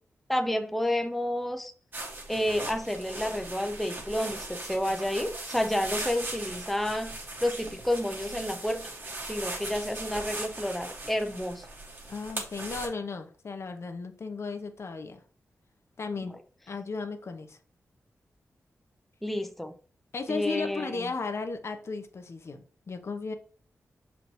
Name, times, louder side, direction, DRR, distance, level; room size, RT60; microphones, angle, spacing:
voice 1, 0.3-1.7 2.3-8.9 9.3-11.7 16.2-16.3 19.2-19.7 20.3-21.1, left 1 dB, ahead, 0.5 m, -30 dB
sound 1, 1.9-12.9, right 2 dB, 40° right, 1.7 m, -39 dB
voice 2, 12.1-15.2 16.0-16.3 16.7-17.6 20.1-23.3, left 4 dB, 55° left, 0.8 m, -35 dB
5.9 x 5.2 x 3.1 m
wide cardioid pair, 95°, 5 cm